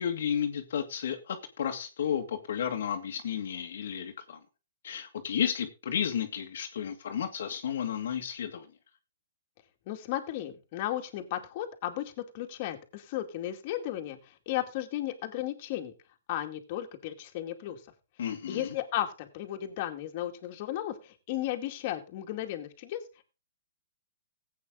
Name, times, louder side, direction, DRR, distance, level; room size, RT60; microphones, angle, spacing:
voice 1, 0.0-4.4 4.8-8.7 18.2-18.7, left 8 dB, 70° left, 4 dB, 1.8 m, -32 dB
voice 2, 9.9-15.9 16.3-17.8 18.5-23.0, left 13 dB, 45° left, 4 dB, 2.2 m, -35 dB
15.5 x 8.6 x 3.8 m, 0.32 s
hypercardioid pair, 145°, 0 cm